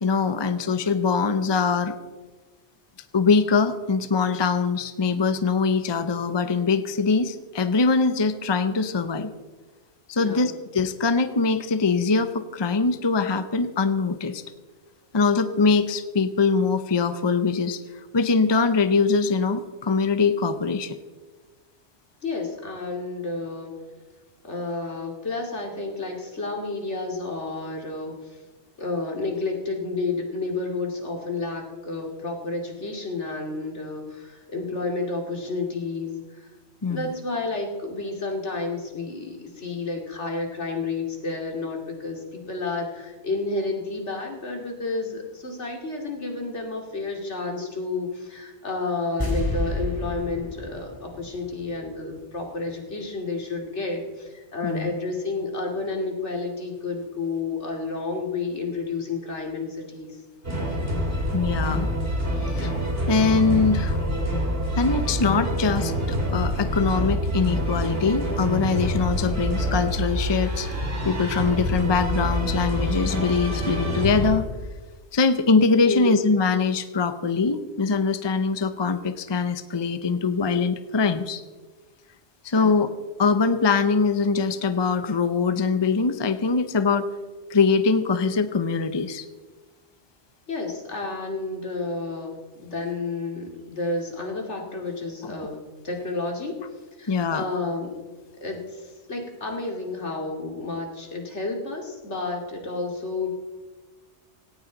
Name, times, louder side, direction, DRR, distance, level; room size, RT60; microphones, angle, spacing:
voice 1, 0.0-1.9 3.1-9.3 10.1-14.4 15.1-17.8 18.1-21.0 36.8-37.1 54.6-54.9 61.3-61.9 62.4-62.7 63.1-64.1 64.8-70.7 71.0-74.4 75.1-81.4 82.4-82.9 83.2-87.1 87.5-89.3 95.2-95.3 97.1-97.4, left 4 dB, 25° left, 10 dB, 0.7 m, -23 dB
voice 2, 22.2-23.7 24.4-28.4 28.8-36.5 36.9-60.2 75.8-76.4 82.5-82.8 90.5-96.6 97.0-98.0 98.4-103.3, left 3 dB, 75° left, 1 dB, 2.9 m, -31 dB
sound 1, 49.2-52.4 52.7-52.8, left 1 dB, 15° right, 2.7 m, -30 dB
sound 2, 60.4-74.3, equal, 55° right, 3.4 m, -26 dB
18.0 x 17.5 x 4.0 m, 1.3 s
omnidirectional pair, 1.2 m